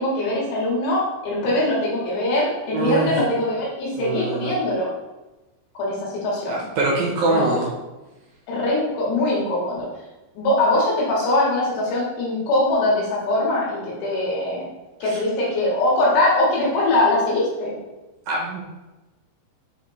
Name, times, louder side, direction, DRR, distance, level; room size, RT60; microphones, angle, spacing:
voice 1, 0.0-4.9 5.8-6.6 7.3-7.5 8.5-9.9 10.4-14.6 15.0-17.8, left 2 dB, 75° left, -5 dB, 3.8 m, -22 dB
voice 2, 2.7-3.1 4.0-4.5 6.5-7.7 15.0-15.2 18.3-18.6, right 3 dB, 70° right, -3 dB, 2.5 m, -24 dB
7.2 x 3.4 x 4.3 m, 1.1 s
omnidirectional pair, 5.1 m